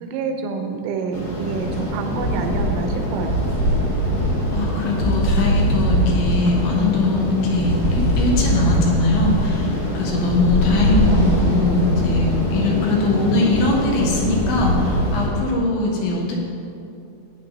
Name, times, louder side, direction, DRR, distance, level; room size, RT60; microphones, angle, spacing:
voice 1, 0.0-3.4, right 4 dB, 80° right, 5 dB, 3.3 m, -27 dB
sound 1, 1.1-15.3, equal, 40° left, 1.3 m, -22 dB
voice 2, 4.5-16.4, left 2 dB, 70° left, -2 dB, 3.7 m, -21 dB
15.0 x 9.5 x 4.1 m, 2.6 s
omnidirectional pair, 5.8 m